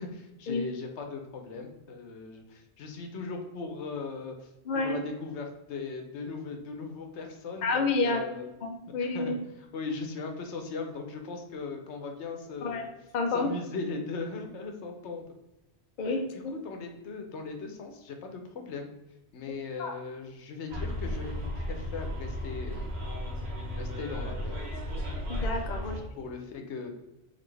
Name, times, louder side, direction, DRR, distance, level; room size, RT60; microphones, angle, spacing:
voice 1, 0.0-4.5 4.7-8.5 9.0-9.3 9.7-12.9 13.3-15.2 16.3-18.9 19.3-22.9 23.8-24.6 25.8-26.9, left 4 dB, 85° left, 4 dB, 1.0 m, -38 dB
voice 2, 7.6-8.2 8.6-9.3 12.6-12.9 13.1-13.5 16.0-16.5 19.8-19.9 25.3-26.0, left 3 dB, 50° left, 3 dB, 0.7 m, -29 dB
Bus, 20.7-26.0, left 1 dB, 65° right, 1.4 m, -34 dB
4.1 x 3.6 x 3.3 m, 0.97 s
omnidirectional pair, 1.1 m